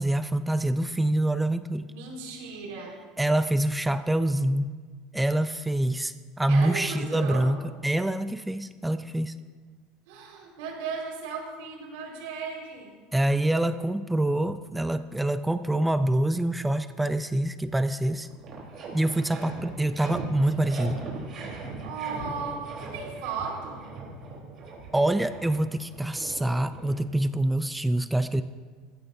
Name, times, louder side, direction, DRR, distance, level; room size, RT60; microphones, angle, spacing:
voice 1, 0.0-1.9 3.2-4.7 5.1-7.6 7.8-9.4 13.1-18.3 18.9-21.0 24.9-28.4, right 1 dB, 5° right, 11 dB, 0.4 m, -25 dB
voice 2, 1.9-2.9 6.5-7.5 10.1-12.9 21.8-23.9, right 5 dB, 85° right, -1 dB, 4.7 m, -36 dB
sound 1, 18.1-27.5, right 3 dB, 35° right, 3.8 m, -40 dB
20.0 x 15.0 x 2.7 m, 1.5 s
cardioid pair, 155°, 0 cm